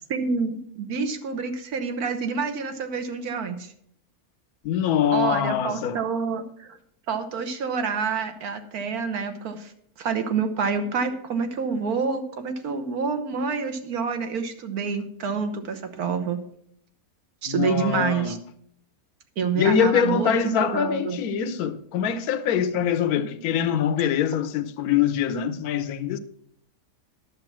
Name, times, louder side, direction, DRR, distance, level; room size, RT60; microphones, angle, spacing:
voice 1, 0.1-3.7 5.1-6.8 7.1-9.7 10.0-16.4 17.4-18.4 19.4-21.2, right 5 dB, 70° right, 1.6 m, -27 dB
voice 2, 4.6-6.0 17.5-18.3 19.5-26.2, left 8 dB, 75° left, 1.2 m, -24 dB
10.5 x 6.9 x 6.0 m
omnidirectional pair, 1.6 m